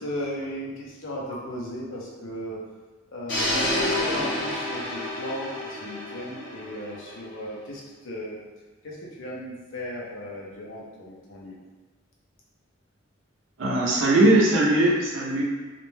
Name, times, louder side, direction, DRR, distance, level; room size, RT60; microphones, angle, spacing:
voice 1, 0.0-2.6 3.1-8.4 8.8-11.5, equal, 85° left, -4 dB, 0.7 m, -36 dB
sound 1, 3.3-7.3, left 1 dB, 65° left, 1.1 m, -29 dB
voice 2, 13.6-15.4, right 1 dB, 75° right, -4 dB, 0.6 m, -20 dB
2.5 x 2.2 x 3.1 m, 1.3 s
head